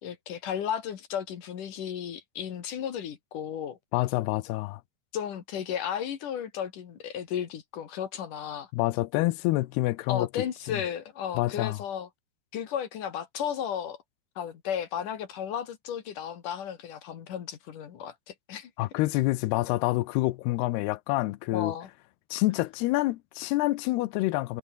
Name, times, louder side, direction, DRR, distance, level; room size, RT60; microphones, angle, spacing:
voice 1, 0.0-3.8 5.1-8.7 10.1-12.1 12.5-14.0 14.4-18.7 21.5-21.9, left 9 dB, 60° left, 3.2 m, -34 dB
voice 2, 3.9-4.8 8.7-10.3 10.7-10.8 11.4-11.8 18.8-21.8 22.3-24.6, left 19 dB, 85° left, 2.8 m, -27 dB
omnidirectional pair, 4.6 m